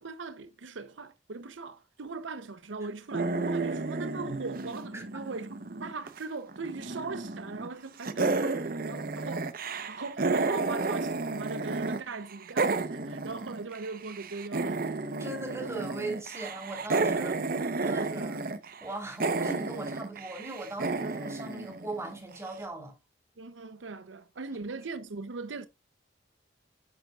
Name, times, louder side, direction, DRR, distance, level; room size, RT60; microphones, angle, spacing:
voice 1, 0.0-9.5 9.9-14.9 17.1-18.3 23.4-25.7, right 3 dB, 85° right, 0.7 m, -40 dB
sound 1, 3.1-6.2 6.5-7.7 8.0-12.0 12.3-22.3, right 3 dB, 50° right, 0.8 m, -32 dB
voice 2, 15.0-17.4 17.8-18.4 18.8-22.9, right 2 dB, 15° right, 3.4 m, -39 dB
11.0 x 7.4 x 2.4 m
head